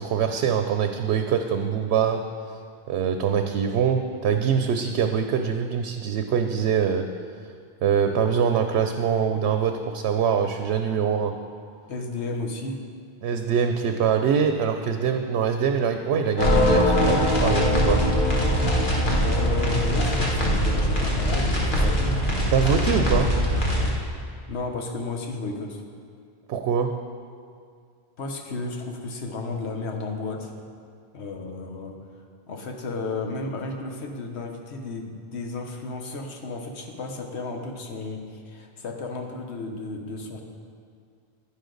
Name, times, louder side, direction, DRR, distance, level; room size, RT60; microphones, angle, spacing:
voice 1, 0.0-2.3 2.9-7.1 7.8-11.4 13.2-18.1 21.8-21.9 22.5-23.4 26.5-27.0, right 7 dB, 90° right, 7 dB, 0.8 m, -24 dB
voice 2, 11.9-12.8 19.2-22.2 24.5-25.8 28.2-30.5 31.1-31.9 32.5-40.4, left 3 dB, 85° left, 3 dB, 1.3 m, -33 dB
sound 1, 16.4-23.9, equal, 50° left, 1.6 m, -22 dB
10.5 x 10.0 x 3.9 m, 2.2 s
omnidirectional pair, 1.1 m